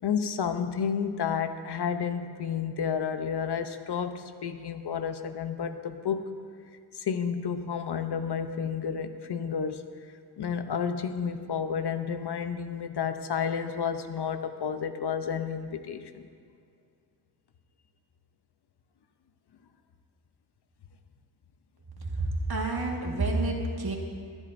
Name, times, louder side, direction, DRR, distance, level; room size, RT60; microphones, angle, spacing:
voice 1, 0.0-6.3 6.9-9.8 10.4-16.3, left 7 dB, 65° left, 8 dB, 0.8 m, -31 dB
voice 2, 22.0-24.0, right 2 dB, 60° right, 0 dB, 1.8 m, -29 dB
21.5 x 11.0 x 2.6 m, 2.3 s
wide cardioid pair, 90°, 42 cm